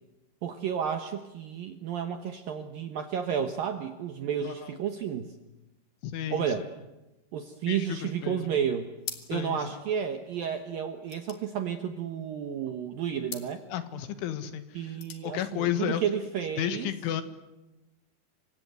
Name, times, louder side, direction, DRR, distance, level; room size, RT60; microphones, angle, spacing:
voice 1, 0.4-5.3 6.3-6.7 7.3-8.9 9.3-13.6 14.7-16.9, right 8 dB, 70° right, 7 dB, 2.2 m, -32 dB
voice 2, 6.0-6.7 7.7-8.4 9.3-9.8 13.7-16.0 16.6-17.2, left 11 dB, 75° left, 10 dB, 3.9 m, -33 dB
sound 1, 9.0-9.6 9.9-10.0 10.2-12.4 13.2-13.6 14.7-15.3, left 8 dB, 55° left, 3.5 m, -43 dB
29.5 x 25.0 x 8.1 m, 1.0 s
omnidirectional pair, 5.7 m